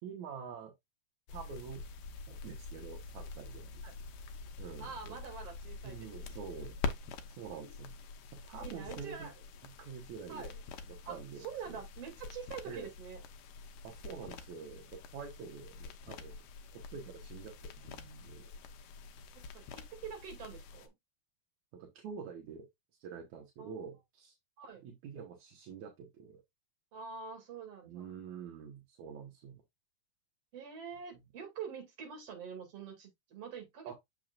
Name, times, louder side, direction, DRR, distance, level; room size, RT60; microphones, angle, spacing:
voice 1, 0.0-0.7 1.3-1.8 2.3-3.8 4.6-5.2 5.8-6.8 7.4-8.0 8.3-9.3 9.8-10.5 10.9-11.8 12.7-12.9 13.8-16.4 16.7-18.5 21.7-22.7 23.0-24.4 24.8-26.4 27.9-29.6 33.9-34.0, right 6 dB, 70° right, 2.2 m, -46 dB
sound 1, 1.3-20.9, left 4 dB, 75° left, 2.4 m, -46 dB
voice 2, 4.8-6.4 8.6-9.4 10.3-10.5 11.0-13.2 19.3-20.9 23.6-23.7 24.6-24.8 26.9-28.1 30.5-33.9, right 6 dB, 50° right, 3.1 m, -46 dB
7.1 x 5.9 x 2.5 m
omnidirectional pair, 3.9 m